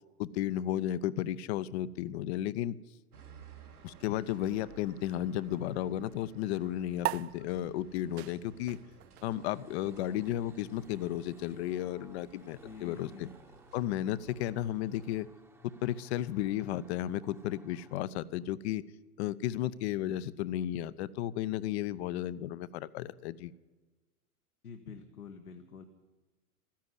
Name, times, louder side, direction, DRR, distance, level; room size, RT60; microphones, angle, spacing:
voice 1, 0.2-2.8 3.8-8.8 9.2-13.3 13.7-15.3 15.6-18.8 19.2-23.5, left 12 dB, 45° left, 17 dB, 0.7 m, -34 dB
sound 1, 3.1-15.2, right 6 dB, 85° right, 2.1 m, -56 dB
sound 2, 7.0-13.8, right 15 dB, 45° right, 0.5 m, -43 dB
sound 3, 9.2-18.1, right 2 dB, 5° right, 0.9 m, -60 dB
voice 2, 12.6-13.3 24.6-25.8, left 6 dB, 85° left, 4 dB, 1.2 m, -47 dB
13.5 x 10.5 x 9.6 m, 1.3 s
figure-of-eight pair, 95°, 44 cm